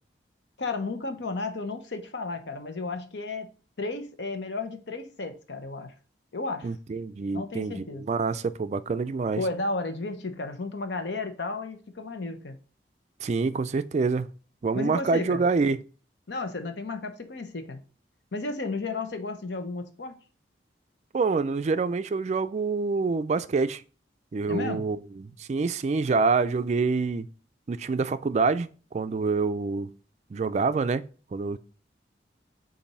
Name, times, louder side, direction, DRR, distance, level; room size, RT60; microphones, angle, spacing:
voice 1, 0.6-3.5 3.8-5.9 6.3-6.7 7.3-8.0 9.4-12.6 14.7-15.4 16.3-17.8 18.3-20.2 24.5-24.8, left 3 dB, 80° left, 0.9 m, -33 dB
voice 2, 6.6-9.4 13.2-14.3 14.6-15.8 21.1-23.8 24.3-27.3 27.7-29.9 30.3-31.6, right 4 dB, 40° right, 0.3 m, -26 dB
7.0 x 2.6 x 5.4 m
head